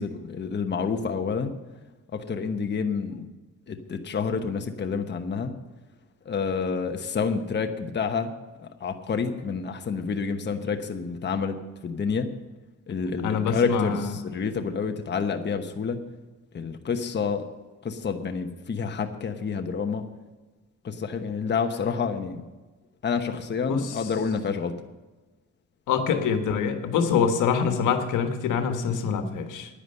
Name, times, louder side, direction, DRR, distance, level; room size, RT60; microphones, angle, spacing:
voice 1, 0.0-1.5 2.1-3.3 3.7-5.5 6.2-8.3 8.6-11.5 11.8-12.3 12.9-16.0 16.5-17.4 17.8-20.0 20.8-22.4 23.0-24.7, left 5 dB, 35° left, 5 dB, 1.1 m, -28 dB
voice 2, 13.2-14.1 23.7-23.8 25.9-29.7, left 6 dB, 80° left, 6 dB, 1.5 m, -25 dB
10.0 x 9.9 x 6.6 m, 1.2 s
cardioid pair, 90°, 30 cm